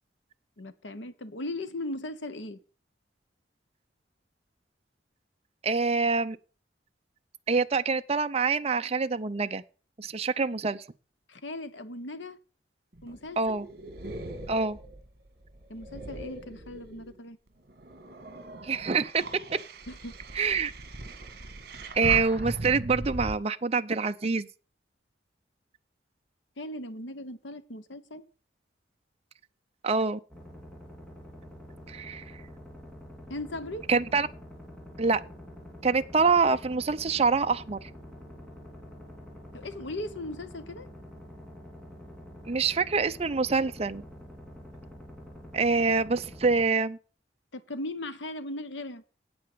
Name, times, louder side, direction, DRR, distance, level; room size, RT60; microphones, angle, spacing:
voice 1, 0.6-2.6 11.3-12.4 13.0-13.6 15.7-17.4 19.9-20.1 26.6-28.2 33.3-33.9 39.5-40.9 47.5-49.2, left 1 dB, 90° left, 1.1 m, -38 dB
voice 2, 5.6-6.4 7.5-9.6 10.0-10.8 13.4-13.7 14.5-14.8 18.6-19.2 19.5-19.6 20.3-20.7 21.9-24.5 29.8-30.2 31.9-32.2 33.9-34.3 35.0-35.2 35.8-37.9 42.5-44.0 45.5-47.0, right 4 dB, 35° right, 0.5 m, -26 dB
sound 1, 12.9-17.2 17.7-23.3, right 2 dB, 55° right, 1.8 m, -40 dB
sound 2, 30.3-46.7, equal, 5° left, 2.6 m, -47 dB
8.8 x 8.6 x 6.7 m
head